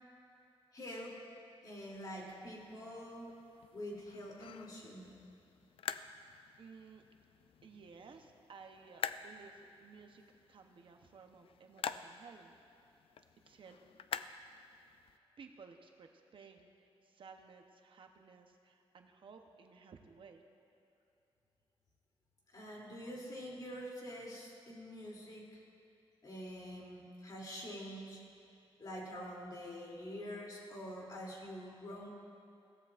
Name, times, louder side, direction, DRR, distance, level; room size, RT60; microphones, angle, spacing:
voice 1, 0.7-1.2 1.6-3.3 3.7-5.1 22.5-25.6 26.2-28.2 28.8-32.1, equal, 40° left, -3 dB, 2.9 m, -46 dB
sound 1, 2.0-15.2, left 8 dB, 70° left, 0.4 m, -48 dB
voice 2, 6.6-7.0 7.6-10.2 10.5-12.5 13.5-13.8 15.4-20.4, right 5 dB, 60° right, 4 dB, 0.9 m, -56 dB
22.0 x 16.0 x 2.5 m, 2.7 s
wide cardioid pair, 170°, 10 cm